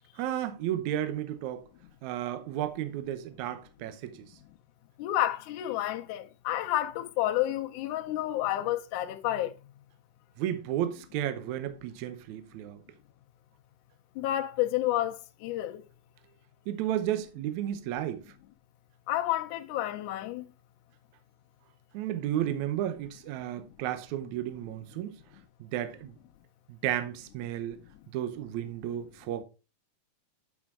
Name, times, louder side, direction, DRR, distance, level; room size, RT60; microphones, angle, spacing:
voice 1, 0.2-1.6 2.0-4.3 10.4-12.8 16.7-18.2 21.9-25.2 25.6-26.2 26.7-27.8 28.1-29.4, right 11 dB, 85° right, 1.6 m, -33 dB
voice 2, 5.0-9.5 14.2-15.8 19.1-20.4, left 14 dB, 85° left, 1.7 m, -30 dB
8.7 x 6.2 x 3.6 m
omnidirectional pair, 4.6 m